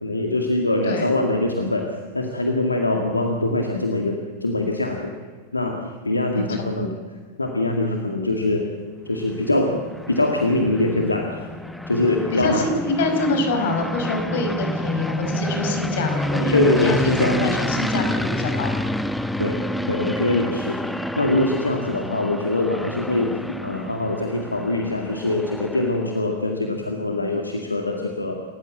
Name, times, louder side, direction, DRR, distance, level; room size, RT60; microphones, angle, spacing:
voice 1, 0.0-5.1 5.5-5.8 6.0-6.9 7.4-8.7 9.1-9.8 10.1-11.5 11.9-12.7 16.5-17.6 19.4-19.6 19.9-20.8 21.2-28.4, left 2 dB, 80° left, 2 dB, 2.1 m, -23 dB
sound 1, 9.1-26.3, left 1 dB, 5° left, 1.1 m, -29 dB
voice 2, 12.3-18.7, left 2 dB, 55° left, 5 dB, 5.3 m, -25 dB
29.0 x 15.0 x 7.6 m, 1.5 s
figure-of-eight pair, 90°, 0 cm